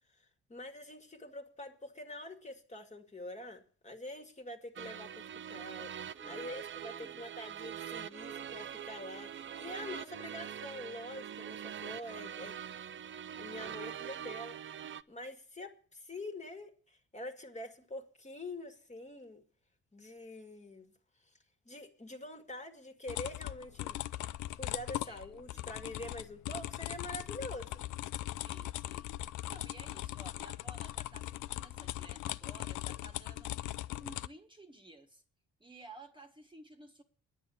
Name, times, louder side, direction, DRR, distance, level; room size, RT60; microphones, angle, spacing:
voice 1, 0.5-5.2 5.5-5.9 6.2-12.6 13.4-14.6 15.1-19.4 19.9-20.9 21.7-24.0 24.5-27.7, left 1 dB, 25° left, 2.0 m, -45 dB
sound 1, 4.8-15.0, right 9 dB, 40° right, 0.6 m, -43 dB
voice 2, 6.2-6.5 6.9-7.2 25.0-25.7 28.4-33.6 34.0-35.2 35.6-37.0, right 2 dB, 15° right, 1.6 m, -55 dB
sound 2, 23.1-34.3, left 15 dB, 75° left, 0.5 m, -40 dB
10.0 x 9.7 x 7.2 m
cardioid pair, 90°, 30 cm